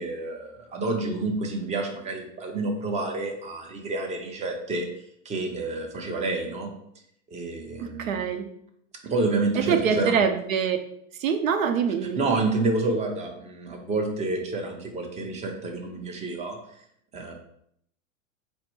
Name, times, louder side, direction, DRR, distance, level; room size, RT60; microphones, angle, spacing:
voice 1, 0.0-4.9 5.2-6.7 7.3-8.2 9.0-10.2 12.2-16.6 17.1-17.3, right 3 dB, 15° right, 2 dB, 0.7 m, -29 dB
voice 2, 7.8-8.5 9.5-10.8 11.2-12.2, right 7 dB, 90° right, 7 dB, 0.6 m, -24 dB
4.1 x 2.1 x 4.5 m, 0.70 s
hypercardioid pair, 120°, 39 cm